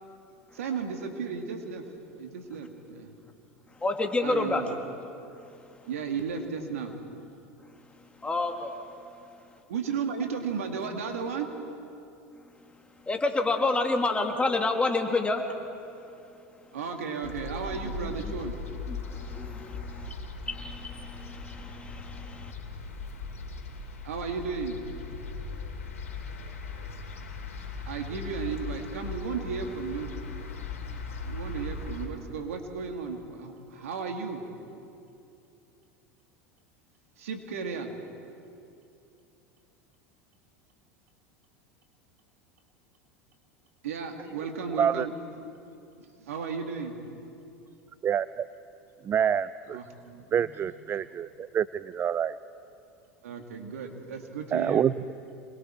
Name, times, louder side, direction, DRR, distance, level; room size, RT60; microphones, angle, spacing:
voice 1, 0.5-1.8 2.2-3.1 4.2-4.7 5.9-7.0 9.7-11.5 16.7-18.6 24.0-24.8 27.9-30.1 31.2-34.4 37.2-37.9 43.8-45.1 46.0-47.0 49.7-50.5 53.2-54.9, right 5 dB, 80° right, 4 dB, 2.2 m, -34 dB
voice 2, 3.8-4.6 8.2-8.8 13.1-15.4 18.9-20.1 20.5-22.5, left 3 dB, 15° left, 3 dB, 2.4 m, -29 dB
sound 1, 17.2-32.1, left 4 dB, 90° left, 2.7 m, -39 dB
voice 3, 48.0-48.4 49.0-49.8 50.3-52.4 54.5-54.9, right 8 dB, 30° right, 17 dB, 0.4 m, -27 dB
27.5 x 21.0 x 4.5 m, 2.7 s
hypercardioid pair, 90°, 8 cm